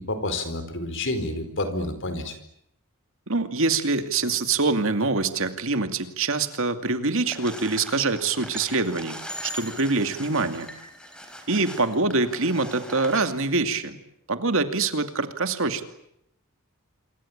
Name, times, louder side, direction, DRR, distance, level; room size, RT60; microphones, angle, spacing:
voice 1, 0.0-2.4, left 2 dB, 60° left, 10 dB, 4.5 m, -29 dB
voice 2, 3.3-10.7 11.5-14.0 14.3-15.8, right 3 dB, 65° right, 8 dB, 2.4 m, -25 dB
sound 1, 7.3-13.2, left 1 dB, 5° left, 4.8 m, -40 dB
27.5 x 24.0 x 8.8 m, 0.77 s
head